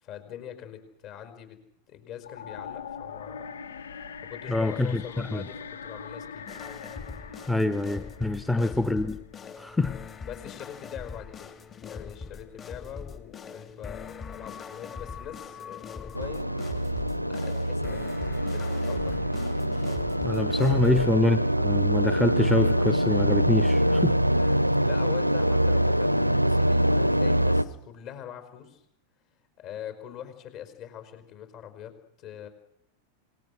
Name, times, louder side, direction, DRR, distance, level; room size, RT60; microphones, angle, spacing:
voice 1, 0.0-1.6 1.9-3.6 4.2-6.5 8.4-8.8 10.3-11.5 11.8-16.5 17.2-18.2 18.5-19.2 20.7-21.0 24.3-26.1 26.4-28.8 29.6-32.5, left 10 dB, 40° left, 9 dB, 5.0 m, -43 dB
sound 1, 2.2-9.3, left 6 dB, 65° left, 1.3 m, -42 dB
voice 2, 4.5-5.4 7.5-9.2 9.6-10.0 20.2-24.2, left 2 dB, 5° left, 10 dB, 1.0 m, -25 dB
sound 2, 6.5-21.1, left 5 dB, 25° left, 2.4 m, -42 dB
sound 3, 16.2-27.6, right 1 dB, 90° right, 0.8 m, -24 dB
28.0 x 19.5 x 6.4 m, 0.75 s
figure-of-eight pair, 90°, 0 cm